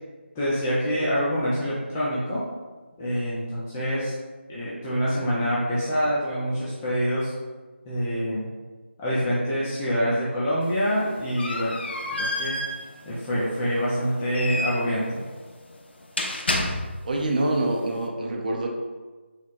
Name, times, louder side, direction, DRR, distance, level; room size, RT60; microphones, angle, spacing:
voice 1, 0.4-2.5 3.0-4.1 4.5-7.3 7.9-8.5 9.0-11.8 12.1-12.6 13.1-15.2, equal, 5° left, -9 dB, 0.3 m, -26 dB
sound 1, 10.6-17.2, left 1 dB, 55° left, 0.6 m, -31 dB
voice 2, 17.0-18.7, right 2 dB, 40° right, 1 dB, 0.6 m, -25 dB
4.2 x 2.1 x 4.6 m, 1.3 s
figure-of-eight pair, 165°, 7 cm